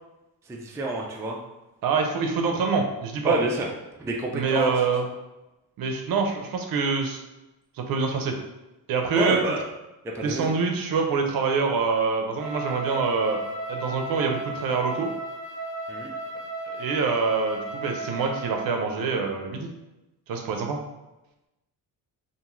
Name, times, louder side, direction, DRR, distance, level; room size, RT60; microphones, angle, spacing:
voice 1, 0.5-1.4 3.2-3.7 4.0-4.7 9.1-9.7 10.0-10.5 15.9-16.1, right 2 dB, 10° right, -1 dB, 0.3 m, -27 dB
voice 2, 1.8-3.4 4.3-5.1 5.8-7.2 7.8-8.4 8.9-9.4 10.2-13.4 13.7-15.1 16.7-19.7 20.3-20.8, right 5 dB, 65° right, 3 dB, 0.6 m, -25 dB
Wind instrument woodwind instrument, 12.4-18.8, right 2 dB, 10° left, 0.9 m, -34 dB
2.6 x 2.4 x 3.0 m, 0.99 s
cardioid pair, 110°, 38 cm